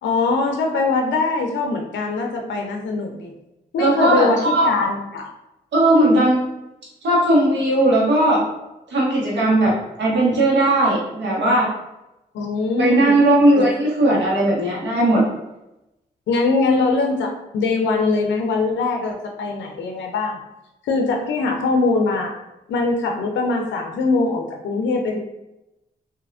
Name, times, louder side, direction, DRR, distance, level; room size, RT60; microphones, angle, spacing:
voice 1, 0.0-3.3 3.7-5.3 12.3-13.2 13.6-13.7 16.3-20.4 20.8-22.4 22.7-25.2, left 3 dB, 75° left, 2 dB, 0.4 m, -22 dB
voice 2, 3.8-4.6 5.7-6.5 7.0-8.4 8.9-9.7 10.0-11.7 12.8-15.2, right 1 dB, 70° right, -4 dB, 1.3 m, -17 dB
3.3 x 2.7 x 2.4 m, 0.93 s
supercardioid pair, 40°, 19 cm